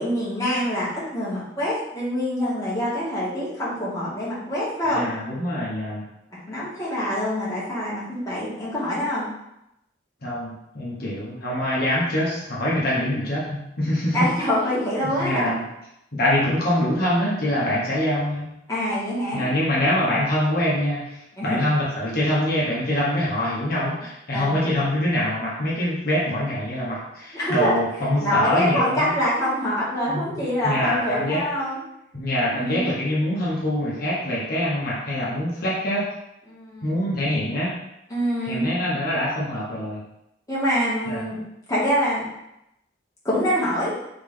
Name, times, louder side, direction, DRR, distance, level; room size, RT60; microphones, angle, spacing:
voice 1, 0.0-5.0 6.5-9.2 14.1-15.5 16.4-16.5 18.7-19.4 21.4-21.6 24.3-24.5 27.3-27.7 28.2-31.8 32.5-32.9 36.5-37.0 38.1-38.6 40.5-41.4 41.7-42.3 43.2-43.9, equal, 20° left, -9 dB, 1.6 m, -25 dB
voice 2, 4.9-6.0 10.2-14.3 15.0-15.6 16.1-18.5 19.3-29.1 30.1-31.4 32.1-36.1 36.8-37.7 38.4-40.0 41.1-41.3, left 1 dB, 55° left, -6 dB, 1.1 m, -24 dB
3.9 x 3.6 x 3.7 m, 0.84 s
head